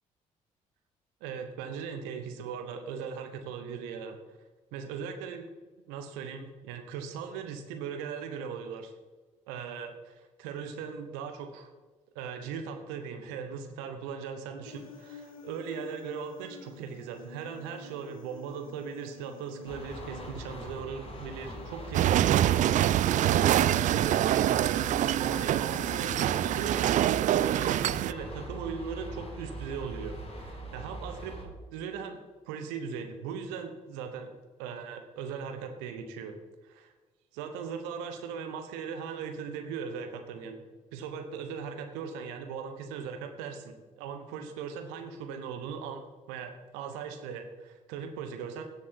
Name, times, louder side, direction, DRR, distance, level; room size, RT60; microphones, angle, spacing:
voice 1, 1.2-4.2 4.7-5.5 5.9-8.9 9.5-11.7 12.1-24.8 25.2-34.3 34.6-36.3 36.6-36.9 37.3-40.6 40.9-48.6, right 6 dB, 70° right, 6 dB, 1.2 m, -39 dB
Human voice, 14.7-22.6, left 4 dB, 85° left, 0.9 m, -50 dB
sound 1, 19.7-31.4, right 1 dB, 35° left, 2.8 m, -42 dB
sound 2, 21.9-28.1, right 12 dB, 45° right, 0.4 m, -25 dB
16.5 x 7.2 x 4.5 m, 1.3 s
figure-of-eight pair, 45°, 17 cm